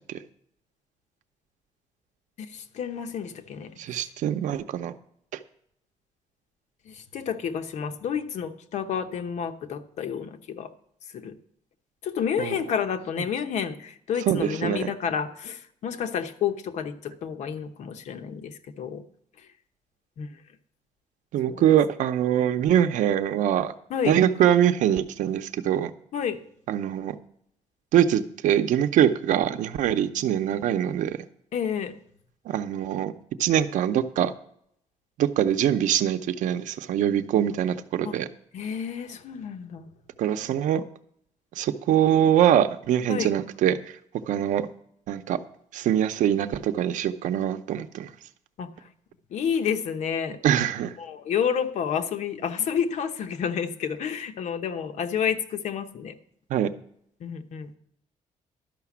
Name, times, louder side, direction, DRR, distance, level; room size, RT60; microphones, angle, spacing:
voice 1, 2.4-3.7 6.9-10.7 11.1-11.3 12.0-19.0 20.2-20.3 21.5-21.6 23.9-24.2 26.1-26.4 31.5-31.9 38.0-38.1 38.5-39.9 43.1-43.3 48.6-48.7 49.3-50.4 51.0-56.2 57.2-57.8, left 7 dB, 65° left, 8 dB, 0.9 m, -30 dB
voice 2, 3.8-4.9 12.4-12.5 14.3-14.9 21.3-23.7 24.0-25.9 26.7-27.2 27.9-31.2 32.5-33.1 33.4-34.3 35.2-38.3 40.2-40.8 41.6-44.0 44.3-44.7 45.1-45.4 45.7-48.1 50.4-50.9 56.5-56.7, right 10 dB, 85° right, 10 dB, 0.7 m, -23 dB
12.0 x 5.9 x 7.2 m, 0.69 s
cardioid pair, 140°, 13 cm